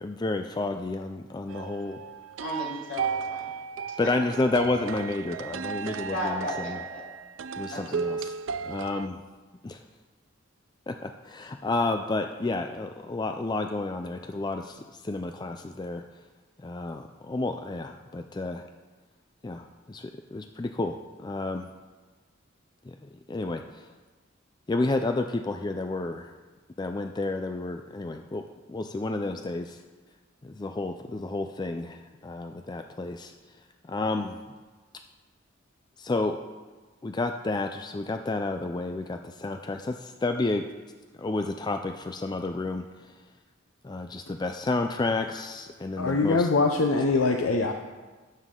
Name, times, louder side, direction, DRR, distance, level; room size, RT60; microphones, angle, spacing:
voice 1, 0.0-2.0 4.0-6.8 7.6-8.4 8.6-9.2 9.6-9.8 10.9-16.0 16.6-18.6 19.4-21.7 22.9-23.9 24.7-26.3 26.8-28.4 28.7-29.8 30.4-33.3 33.8-34.5 36.0-36.4 37.0-40.7 41.2-43.1 43.8-46.5, left 2 dB, 20° left, 6 dB, 0.4 m, -31 dB
sound 1, 1.5-9.1, right 6 dB, 70° right, 0.4 m, -35 dB
voice 2, 2.4-3.5 4.0-4.1 6.1-7.1 7.7-7.9, left 1 dB, 65° left, -5 dB, 3.3 m, -34 dB
voice 3, 46.0-47.7, left 3 dB, 85° left, 3 dB, 0.7 m, -23 dB
17.0 x 7.4 x 3.8 m, 1.3 s
head